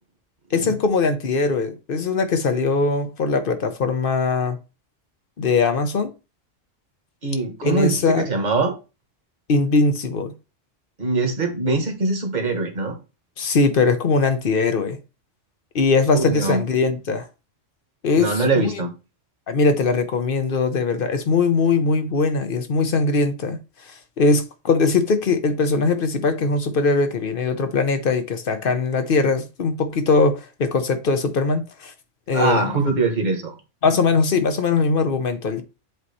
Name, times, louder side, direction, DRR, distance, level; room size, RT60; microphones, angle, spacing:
voice 1, 0.5-4.6 5.4-6.1 7.6-8.3 9.5-10.3 13.4-15.0 15.7-17.3 18.0-18.8 19.5-23.6 23.9-31.9 32.3-32.7 33.8-35.6, left 4 dB, 50° left, 0.9 m, -21 dB
voice 2, 7.2-8.7 11.0-13.0 16.1-16.6 18.2-18.9 32.3-33.6, right 3 dB, 40° right, 1.4 m, -22 dB
7.8 x 2.9 x 4.1 m
omnidirectional pair, 1.3 m